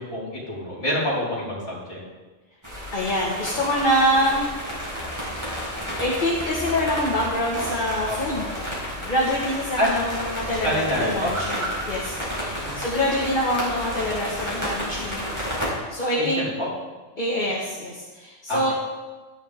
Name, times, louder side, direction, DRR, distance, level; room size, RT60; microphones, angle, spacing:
voice 1, 0.0-2.0 8.0-8.4 9.8-9.9 10.6-11.3 12.6-12.8 16.2-16.7 18.5-18.7, equal, 20° left, -9 dB, 4.5 m, -27 dB
sound 1, 2.6-15.7, equal, 15° right, 4.7 m, -31 dB
voice 2, 2.9-4.5 6.0-8.4 9.0-15.3 15.5-16.4 17.2-18.7, equal, 40° left, -4 dB, 1.8 m, -25 dB
13.0 x 11.0 x 3.6 m, 1.2 s
omnidirectional pair, 1.3 m